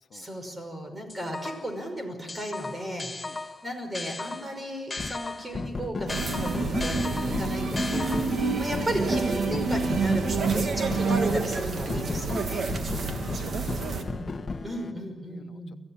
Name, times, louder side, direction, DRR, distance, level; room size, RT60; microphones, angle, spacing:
voice 1, 0.1-8.2 8.6-12.7 13.9-15.8, equal, 25° right, 5 dB, 5.5 m, -35 dB
sound 1, 1.1-1.8 2.3-5.6 6.1-8.6, left 3 dB, 20° left, 1.2 m, -37 dB
sound 2, 5.0-5.1 5.5-11.5 11.9-14.9, left 3 dB, 35° left, 1.5 m, -35 dB
sound 3, 6.1-14.0, right 4 dB, 65° right, 2.5 m, -28 dB
voice 2, 12.9-14.1 15.3-15.6, left 6 dB, 65° left, 7 dB, 1.2 m, -50 dB
25.5 x 15.5 x 8.9 m, 1.4 s
wide cardioid pair, 110°, 0 cm